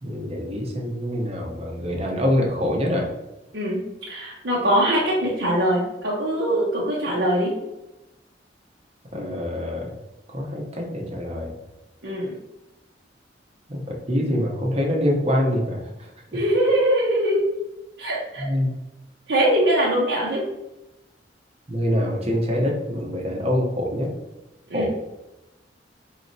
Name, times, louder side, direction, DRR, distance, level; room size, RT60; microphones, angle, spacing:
voice 1, 0.0-3.1 9.1-9.9 10.3-11.5 13.7-16.1 18.4-18.7 21.7-24.1 24.7-24.9, equal, 35° right, 0 dB, 0.8 m, -25 dB
voice 2, 4.1-7.5 12.0-12.3 16.3-17.5 18.0-18.5 19.3-20.4 24.7-24.9, right 1 dB, 75° right, -6 dB, 0.9 m, -22 dB
4.6 x 3.1 x 2.6 m, 0.91 s
head